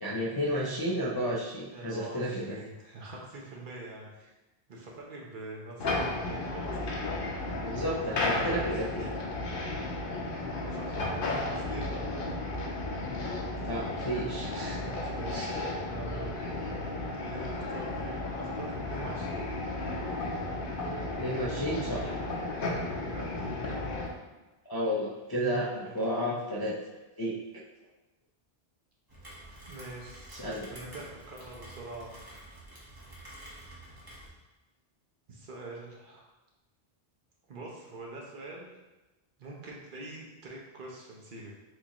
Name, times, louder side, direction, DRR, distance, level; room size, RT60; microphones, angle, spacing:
voice 1, 0.0-2.6 7.6-9.1 13.6-14.8 15.3-15.5 21.2-22.2 24.7-26.8 27.2-27.3 30.3-30.7, equal, 35° left, -6 dB, 0.4 m, -32 dB
voice 2, 1.7-4.3 4.7-6.8 7.1-7.6 8.1-8.7 9.0-9.1 10.6-12.3 14.6-15.5 15.8-16.3 17.1-19.4 23.0-23.3 23.6-23.8 25.8-25.9 29.6-30.3 30.7-32.3 35.3-36.2 37.5-38.7 39.4-41.5, right 2 dB, 55° right, -2 dB, 0.9 m, -44 dB
sound 1, 5.8-24.1, left 2 dB, 60° left, 0.8 m, -34 dB
Rain, 29.1-34.3, right 1 dB, 20° right, 0.9 m, -49 dB
6.3 x 2.5 x 2.9 m, 1.1 s
omnidirectional pair, 1.1 m